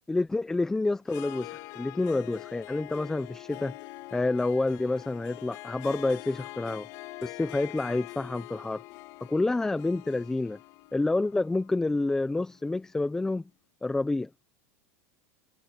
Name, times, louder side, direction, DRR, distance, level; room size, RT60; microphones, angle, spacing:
voice 1, 0.1-3.7 4.1-6.9 7.2-8.8 9.3-10.6 10.9-13.4 13.8-14.3, left 2 dB, 5° left, 0.8 m, -28 dB
Harp, 1.0-12.9, left 20 dB, 50° left, 3.7 m, -45 dB
supercardioid pair, 150°, 8 cm